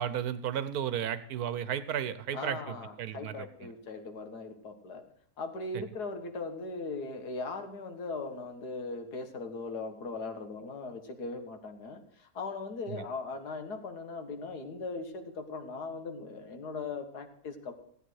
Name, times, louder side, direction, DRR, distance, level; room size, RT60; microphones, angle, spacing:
voice 1, 0.0-3.7 5.7-5.8 12.9-13.0, right 9 dB, 70° right, 14 dB, 1.3 m, -34 dB
voice 2, 2.3-5.0 5.4-17.8, left 3 dB, 80° left, 7 dB, 2.1 m, -39 dB
16.5 x 9.0 x 6.3 m, 0.66 s
omnidirectional pair, 1.7 m